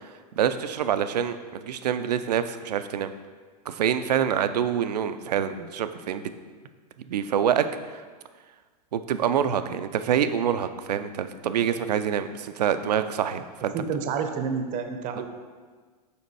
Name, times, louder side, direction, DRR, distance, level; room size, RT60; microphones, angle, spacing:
voice 1, 0.4-1.4 1.6-3.1 3.7-6.3 7.1-7.6 8.9-13.7, right 9 dB, 80° right, 10 dB, 0.4 m, -26 dB
voice 2, 13.7-15.3, right 6 dB, 40° right, 7 dB, 0.6 m, -29 dB
5.0 x 4.2 x 4.6 m, 1.5 s
hypercardioid pair, 110°, 20 cm